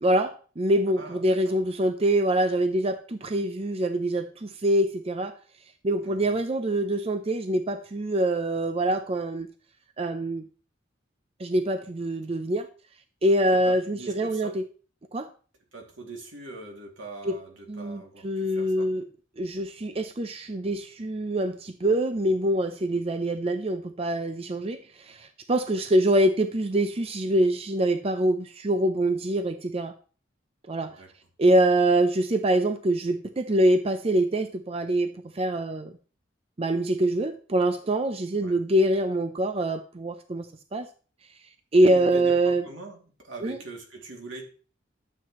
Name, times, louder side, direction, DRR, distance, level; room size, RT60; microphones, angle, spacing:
voice 1, 0.0-5.3 5.8-9.5 10.0-10.5 11.4-12.7 13.2-14.6 15.1-15.3 17.2-17.4 17.7-19.0 19.4-29.9 30.7-30.9 31.4-35.9 36.6-40.5 40.7-40.9 41.7-42.7 43.4-43.6, right 1 dB, 30° right, 8 dB, 0.6 m, -25 dB
voice 2, 1.0-1.6 6.0-6.4 13.6-14.5 15.7-18.9 25.7-25.9 31.0-31.1 38.4-38.5 41.8-44.4, right 2 dB, 85° right, 1 dB, 2.6 m, -42 dB
12.0 x 7.8 x 3.1 m, 0.38 s
head